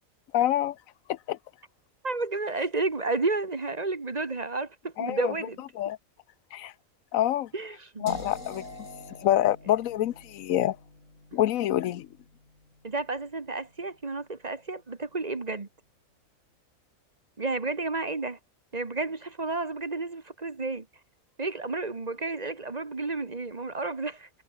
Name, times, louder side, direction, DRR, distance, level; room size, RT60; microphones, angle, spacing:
voice 1, 0.3-0.8 1.1-1.4 5.0-5.3 5.8-6.0 6.5-6.7 7.1-7.5 8.0-8.6 9.2-10.8 11.3-12.1, left 12 dB, 90° left, 1.1 m, -26 dB
voice 2, 2.0-5.6 7.5-8.1 12.8-15.7 17.4-18.4 18.7-20.9 21.4-24.3, right 3 dB, 30° right, 1.4 m, -31 dB
sound 1, 8.1-14.0, left 2 dB, 65° left, 5.9 m, -45 dB
omnidirectional pair, 1.4 m